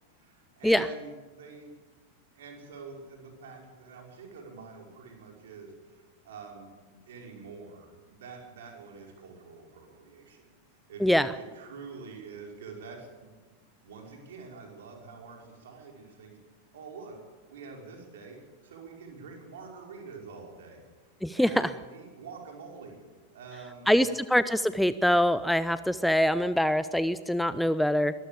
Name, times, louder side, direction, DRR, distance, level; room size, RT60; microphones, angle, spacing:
voice 1, 0.2-1.7 2.3-13.4 13.8-16.4 16.7-17.2 17.5-18.4 18.6-20.8 21.3-23.0 23.3-24.2, right 4 dB, 60° right, 1 dB, 5.3 m, -46 dB
voice 2, 21.2-21.7 23.9-28.1, equal, ahead, 14 dB, 0.6 m, -24 dB
22.5 x 14.0 x 8.6 m, 1.3 s
figure-of-eight pair, 90°, 0 cm